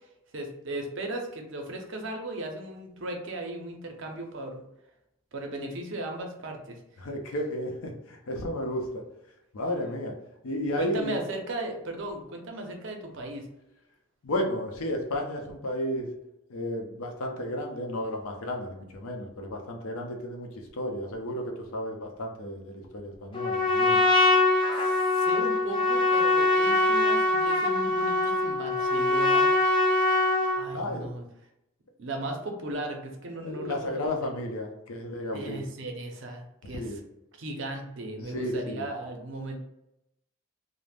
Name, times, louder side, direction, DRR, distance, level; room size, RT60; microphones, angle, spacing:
voice 1, 0.3-4.6 5.3-6.8 10.8-13.5 24.8-29.5 30.5-31.2 32.0-34.1 35.3-37.0 37.4-39.6, right 2 dB, 60° right, 3 dB, 0.5 m, -36 dB
voice 2, 7.0-9.0 9.5-10.1 10.4-11.2 14.2-16.1 16.5-24.0 30.7-31.1 33.4-35.6 36.7-37.0 38.3-38.9, left 1 dB, 80° left, 2 dB, 0.6 m, -33 dB
Trumpet, 23.3-30.7, left 2 dB, 25° left, 0.4 m, -23 dB
2.5 x 2.1 x 3.3 m, 0.83 s
head